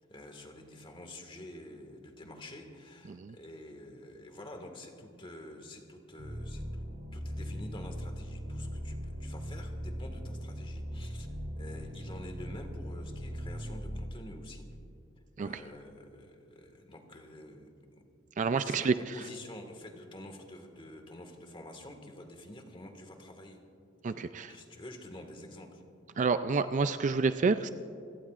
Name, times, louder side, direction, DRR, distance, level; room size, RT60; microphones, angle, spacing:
voice 1, 0.1-6.8 7.1-11.3 11.6-14.7 15.4-18.0 18.6-23.6 24.1-25.8, left 1 dB, 25° left, 4 dB, 1.8 m, -48 dB
sound 1, 6.2-14.1, equal, 70° right, 3.4 m, -39 dB
voice 2, 18.4-18.9 24.0-24.5 26.2-27.7, right 4 dB, 35° right, 11 dB, 0.4 m, -28 dB
29.0 x 17.0 x 2.5 m, 2.7 s
head